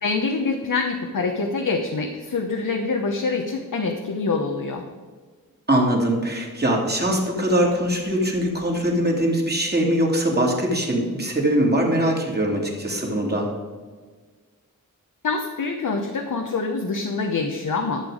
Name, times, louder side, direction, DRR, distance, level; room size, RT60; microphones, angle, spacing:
voice 1, 0.0-4.8 15.2-18.1, left 4 dB, 70° left, 3 dB, 1.0 m, -25 dB
voice 2, 5.7-13.5, right 1 dB, 30° right, -1 dB, 2.7 m, -22 dB
12.0 x 6.9 x 4.9 m, 1.5 s
wide cardioid pair, 70°, 33 cm